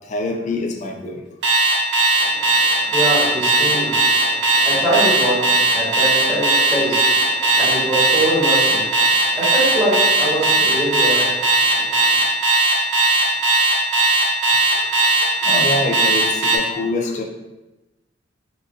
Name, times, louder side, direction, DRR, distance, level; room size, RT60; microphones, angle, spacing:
voice 1, 0.1-1.2 3.7-4.0 7.3-7.5 7.9-8.0 8.9-9.1 11.1-11.2 14.8-15.0 15.3-17.2, left 2 dB, 40° left, 3 dB, 0.4 m, -26 dB
Alarm, 1.4-16.6, right 2 dB, 75° right, 0.7 m, -17 dB
voice 2, 2.1-12.2, right 1 dB, 15° right, -11 dB, 1.1 m, -24 dB
3.8 x 2.6 x 2.4 m, 1.0 s
head